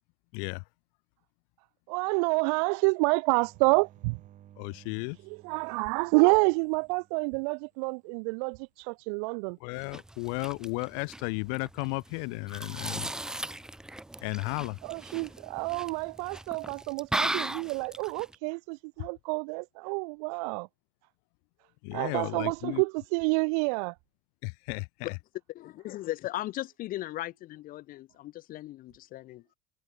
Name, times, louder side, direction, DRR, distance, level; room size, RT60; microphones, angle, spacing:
voice 1, 0.3-0.6 4.6-5.2 9.6-13.1 14.2-14.8 21.8-22.8 24.4-25.2, left 40 dB or more, 80° left, 1.2 m, -34 dB
voice 2, 1.9-4.2 5.4-9.6 14.8-20.7 21.9-23.9, right 33 dB, 90° right, 0.8 m, -28 dB
sound 1, 3.3-7.9 11.2-11.8, right 11 dB, 40° right, 5.5 m, -58 dB
sound 2, 9.7-18.4, right 1 dB, 5° right, 0.4 m, -37 dB
voice 3, 25.5-29.5, left 15 dB, 45° left, 1.0 m, -37 dB
cardioid pair, 145°, 19 cm